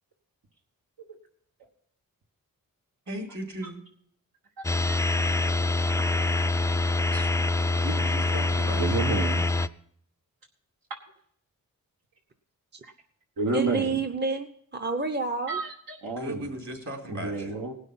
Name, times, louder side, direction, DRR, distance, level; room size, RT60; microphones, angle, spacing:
voice 1, 3.1-3.8 7.8-9.0 16.2-17.5, right 1 dB, 50° right, 1 dB, 3.9 m, -36 dB
sound 1, 4.6-9.7, left 2 dB, 10° left, 0.4 m, -25 dB
voice 2, 4.6-5.0 7.1-7.3 8.8-9.4 12.8-12.9 13.4-14.0 15.5-16.5 17.1-17.7, right 3 dB, 75° right, 0 dB, 1.5 m, -31 dB
voice 3, 13.5-15.6, right 4 dB, 30° right, 6 dB, 0.8 m, -29 dB
18.5 x 6.4 x 5.7 m, 0.65 s
cardioid pair, 75°, 35 cm